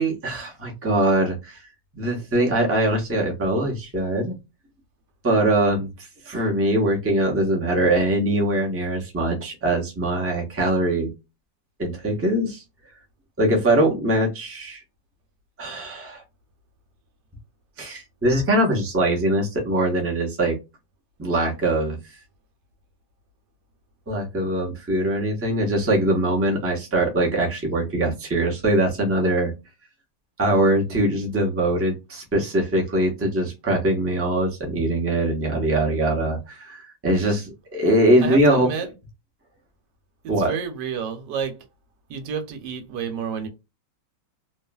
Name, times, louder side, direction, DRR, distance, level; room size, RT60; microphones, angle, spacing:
voice 1, 0.0-1.6 1.9-4.4 5.2-5.9 6.2-11.1 11.8-12.6 13.4-14.8 15.6-16.2 17.8-20.5 21.2-22.0 24.1-29.5 30.4-38.9 40.3-40.5, right 1 dB, 15° right, 0.4 m, -22 dB
voice 2, 38.2-38.9 40.2-41.6 42.1-43.5, right 6 dB, 80° right, 1.4 m, -30 dB
2.9 x 2.4 x 2.2 m
omnidirectional pair, 1.9 m